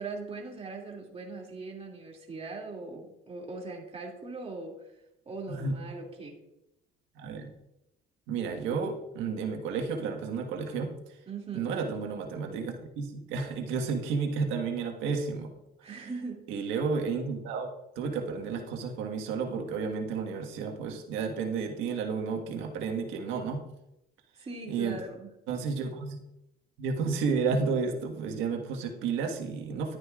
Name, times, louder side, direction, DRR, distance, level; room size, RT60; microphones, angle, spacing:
voice 1, 0.0-4.9 5.3-6.4 11.3-11.7 15.8-16.5 24.4-25.3, right 3 dB, 30° right, -1 dB, 2.4 m, -40 dB
voice 2, 7.2-7.5 8.3-10.9 11.5-15.5 16.5-17.7 17.9-23.6 24.7-25.0 25.5-26.2 26.8-30.0, right 5 dB, 85° right, 3 dB, 1.5 m, -31 dB
11.5 x 9.4 x 2.4 m, 0.88 s
cardioid pair, 85°, 20 cm